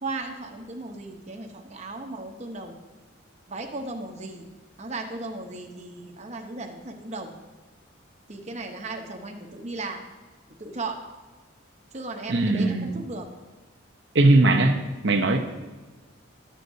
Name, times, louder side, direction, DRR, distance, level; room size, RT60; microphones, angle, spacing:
voice 1, 0.0-2.7 3.5-4.5 4.8-7.3 8.3-10.0 10.6-11.0 11.9-13.3, right 2 dB, 35° right, 3 dB, 0.9 m, -36 dB
voice 2, 12.3-12.9 14.1-15.4, right 2 dB, 60° right, 5 dB, 0.7 m, -20 dB
12.0 x 7.7 x 2.7 m, 1.3 s
head